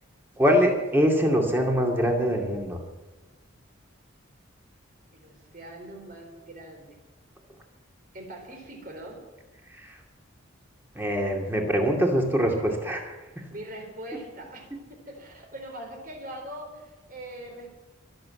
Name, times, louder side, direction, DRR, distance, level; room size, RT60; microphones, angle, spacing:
voice 1, 0.4-2.8 9.8-9.9 10.9-13.2, equal, 10° right, 1 dB, 2.4 m, -23 dB
voice 2, 5.1-7.0 8.1-9.2 13.3-17.7, right 1 dB, 45° right, 3 dB, 3.8 m, -42 dB
23.5 x 7.8 x 7.6 m, 1.1 s
head